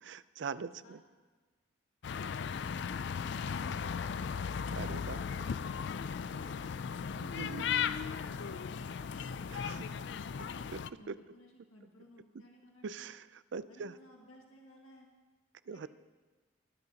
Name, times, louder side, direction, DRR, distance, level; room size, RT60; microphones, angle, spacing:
voice 1, 0.0-1.0 4.7-5.2 7.4-7.6 9.5-9.9 10.7-10.8 11.1-11.2 12.8-13.9 15.7-15.9, right 5 dB, 60° right, 15 dB, 0.4 m, -42 dB
voice 2, 0.6-1.0 5.2-5.4 11.0-13.1 13.7-15.1 15.7-15.9, equal, 90° left, 0 dB, 1.8 m, -58 dB
sound 1, 2.0-10.9, left 6 dB, 55° left, 0.3 m, -37 dB
21.5 x 12.0 x 2.9 m, 1.3 s
head